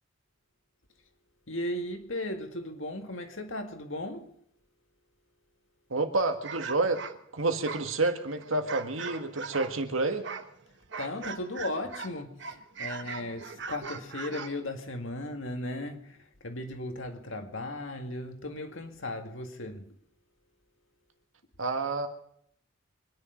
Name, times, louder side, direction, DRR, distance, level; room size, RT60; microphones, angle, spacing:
voice 1, 1.5-4.3 11.0-19.9, left 1 dB, 70° left, 2.0 m, -36 dB
voice 2, 5.9-7.0 7.3-10.3 21.6-22.1, right 3 dB, 75° right, 2.0 m, -29 dB
sound 1, 6.4-9.8 10.2-12.1 12.4-14.6, right 5 dB, 55° right, 1.2 m, -40 dB
25.0 x 10.5 x 5.3 m
head